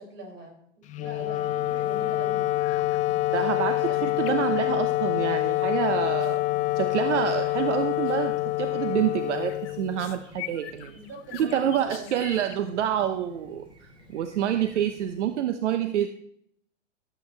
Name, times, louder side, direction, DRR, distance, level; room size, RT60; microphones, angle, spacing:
voice 1, 0.0-2.5 3.3-4.5 10.9-12.1, right 1 dB, 30° right, 0 dB, 6.1 m, -43 dB
Wind instrument woodwind instrument, 0.9-10.2, left 16 dB, 20° left, 0.5 m, -26 dB
Chirp tweet, 1.2-15.4, left 1 dB, 15° right, 5.4 m, -50 dB
sound 1, 1.4-1.8 2.0-2.3 2.6-3.0 3.3-5.1 6.2-6.4 6.9-7.3 7.6-7.8 8.0-8.4 8.8-12.5, left 13 dB, 50° left, 1.0 m, -45 dB
voice 2, 3.3-6.4 6.8-11.0 11.3-16.1, right 10 dB, 65° right, 9 dB, 1.0 m, -27 dB
16.5 x 8.9 x 3.4 m, 0.68 s
hypercardioid pair, 110°, 38 cm